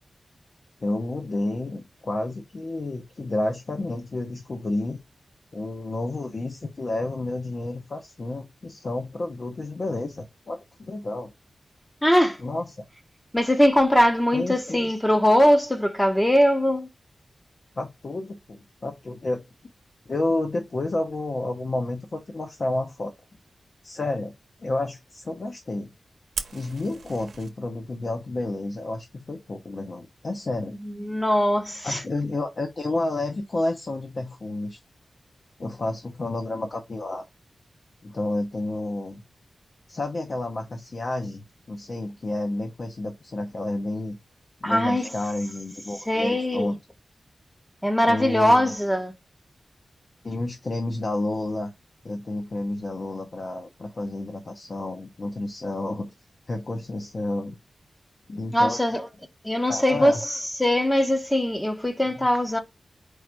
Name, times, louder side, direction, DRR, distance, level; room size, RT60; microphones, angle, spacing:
voice 1, 0.8-5.0 5.5-11.3 12.4-12.8 14.3-14.8 17.8-19.4 20.1-23.1 23.8-24.3 24.6-25.9 26.5-30.7 31.8-34.8 35.6-37.2 38.0-39.2 39.9-44.2 44.6-46.8 48.0-48.7 50.2-51.7 52.0-56.1 56.5-57.6 58.3-58.8 59.7-60.2, left 2 dB, 50° left, 0.7 m, -30 dB
voice 2, 12.0-12.4 13.3-16.9 30.8-32.0 44.6-45.1 46.1-46.7 47.8-49.1 58.5-59.1 59.4-62.6, equal, 10° left, 0.7 m, -21 dB
Fire, 26.3-27.5, right 5 dB, 85° right, 0.8 m, -36 dB
4.7 x 2.5 x 4.4 m
wide cardioid pair, 110°, 0 cm